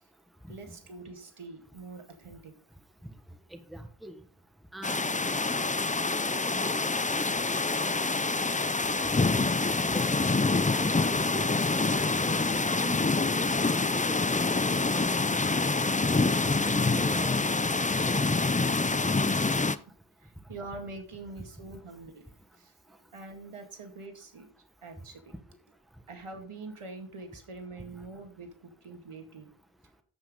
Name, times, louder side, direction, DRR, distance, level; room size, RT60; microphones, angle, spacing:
voice 1, 0.5-2.6 20.2-22.2 22.5-22.7 23.1-24.5 24.8-25.3 26.1-29.5, right 3 dB, 85° right, 2.1 m, -44 dB
voice 2, 3.5-4.1 4.7-5.1 5.4-7.2 8.0-8.4 9.0-9.4 9.7-10.2 10.7-13.8 14.3-15.7 16.4-17.4 17.9-18.4, right 1 dB, ahead, 1.3 m, -43 dB
sound 1, 4.8-19.8, left 3 dB, 15° left, 0.5 m, -26 dB
9.4 x 8.0 x 3.8 m
wide cardioid pair, 70°, 50 cm